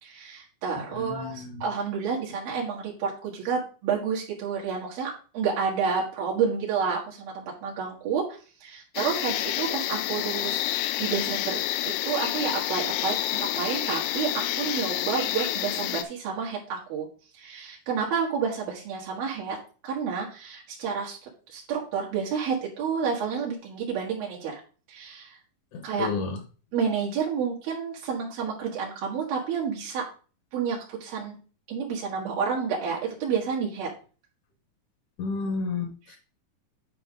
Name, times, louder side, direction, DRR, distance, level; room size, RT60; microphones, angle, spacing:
voice 1, 0.0-8.3 8.6-17.1 17.4-19.6 19.8-21.2 21.5-24.6 24.9-25.4 25.8-26.1 26.7-30.0 30.5-31.4 31.7-33.9, right 6 dB, 85° right, -3 dB, 3.4 m, -30 dB
voice 2, 0.9-1.6 25.7-26.4 35.2-36.2, left 4 dB, 65° left, 5 dB, 2.3 m, -31 dB
sound 1, 9.0-16.0, left 14 dB, 85° left, 1.8 m, -29 dB
9.6 x 4.9 x 3.7 m, 0.37 s
omnidirectional pair, 4.1 m